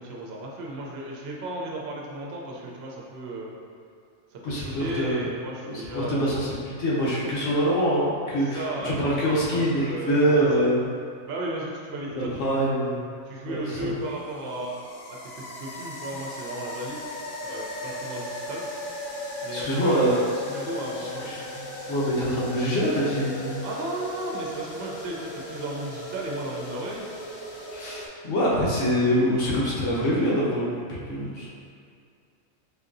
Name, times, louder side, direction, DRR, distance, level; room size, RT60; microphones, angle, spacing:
voice 1, 0.0-3.6 4.3-6.3 7.1-7.2 8.3-9.2 9.5-10.7 11.3-12.6 13.3-14.8 15.3-17.0 17.4-18.7 19.4-21.3 23.6-27.0, right 1 dB, 60° right, -2 dB, 0.7 m, -34 dB
voice 2, 4.4-5.2 5.6-10.9 12.1-13.0 13.5-13.9 19.5-20.3 21.0-21.4 21.9-23.6 27.7-30.6 31.0-31.5, equal, 65° left, -6 dB, 1.1 m, -25 dB
sound 1, 13.4-28.1, left 1 dB, 90° left, 1.1 m, -37 dB
4.5 x 2.7 x 2.6 m, 2.3 s
omnidirectional pair, 1.4 m